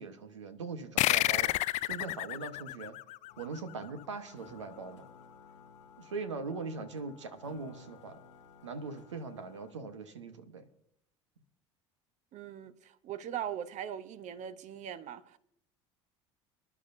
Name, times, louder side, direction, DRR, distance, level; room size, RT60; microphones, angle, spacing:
voice 1, 0.0-1.5 1.9-3.0 3.4-5.1 6.0-8.2 8.6-10.7, right 4 dB, 90° right, 1.2 m, -41 dB
sound 1, 1.0-4.0, left 17 dB, 50° left, 0.4 m, -30 dB
sound 2, 3.3-9.7, left 6 dB, 85° left, 1.0 m, -56 dB
voice 2, 12.3-15.4, right 9 dB, 50° right, 1.0 m, -40 dB
25.0 x 11.0 x 2.7 m
hypercardioid pair, 70°, 15 cm